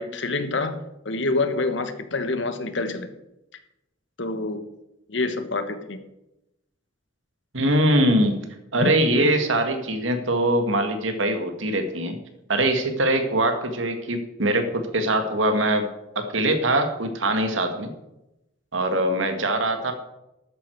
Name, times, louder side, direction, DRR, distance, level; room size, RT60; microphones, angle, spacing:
voice 1, 0.0-3.1 4.2-4.6 5.1-6.0 8.8-8.9, left 3 dB, 70° left, 9 dB, 1.3 m, -27 dB
voice 2, 7.5-8.4 8.7-12.2 12.5-15.9 16.2-17.9 18.7-19.9, right 1 dB, 85° right, 6 dB, 1.9 m, -22 dB
13.0 x 9.6 x 4.6 m, 0.90 s
head